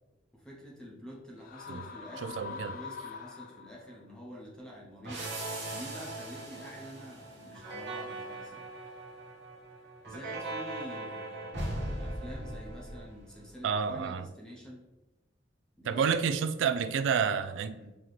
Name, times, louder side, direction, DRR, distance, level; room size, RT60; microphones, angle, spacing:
voice 1, 0.3-8.7 10.1-11.6 12.0-14.9 15.8-16.2 17.7-18.0, equal, 5° left, -4 dB, 0.7 m, -47 dB
sound 1, 1.4-4.0, left 5 dB, 50° left, 0.3 m, -44 dB
voice 2, 2.2-2.8 13.6-14.2 15.8-17.8, right 6 dB, 80° right, 11 dB, 0.3 m, -29 dB
sound 2, 5.0-13.5, right 1 dB, 65° right, 1.1 m, -39 dB
4.0 x 2.9 x 3.2 m, 1.0 s
head